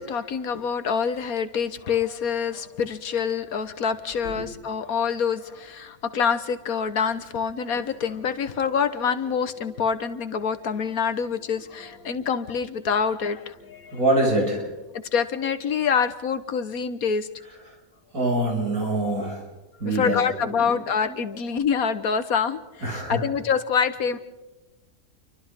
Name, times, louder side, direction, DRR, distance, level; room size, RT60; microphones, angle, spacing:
voice 1, 0.0-14.0 15.1-17.3 19.9-24.2, left 6 dB, 90° left, 10 dB, 1.7 m, -26 dB
voice 2, 13.9-14.7 18.1-19.4 19.8-20.8 21.0-21.2 22.8-23.2, right 1 dB, 85° right, -1 dB, 7.3 m, -25 dB
29.5 x 24.5 x 3.7 m, 1.1 s
omnidirectional pair, 1.5 m